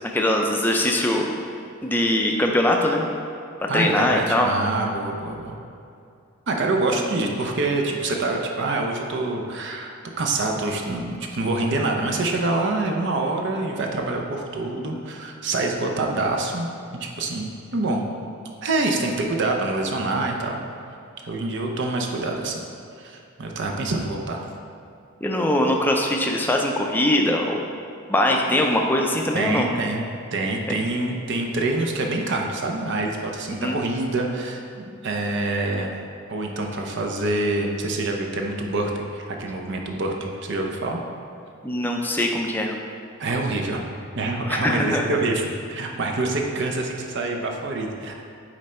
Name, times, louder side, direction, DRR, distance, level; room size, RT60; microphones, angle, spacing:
voice 1, 0.1-1.3 1.8-3.0 3.7-4.5 14.9-15.0 25.2-27.6 28.1-29.7 33.6-33.8 41.6-42.7 44.5-45.0, left 1 dB, 10° left, 1 dB, 0.4 m, -21 dB
voice 2, 3.7-5.6 6.5-16.7 17.0-18.0 18.6-20.6 21.2-22.6 23.0-24.4 29.3-30.0 30.3-35.9 36.3-41.0 43.2-48.2, right 2 dB, 50° right, 1 dB, 0.6 m, -26 dB
8.9 x 3.3 x 4.3 m, 2.5 s
head